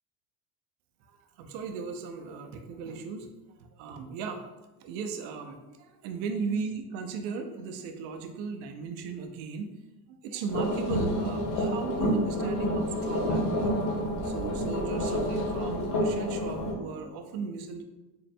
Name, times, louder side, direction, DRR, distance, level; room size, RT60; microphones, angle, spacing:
voice 1, 1.4-3.3 3.6-4.4 4.8-9.7 10.1-13.8 14.2-17.8, right 5 dB, 80° right, 5 dB, 0.7 m, -37 dB
sound 1, 10.5-16.7, equal, 75° left, 1.4 m, -29 dB
4.1 x 3.8 x 2.2 m, 1.1 s
supercardioid pair, 105°, 50 cm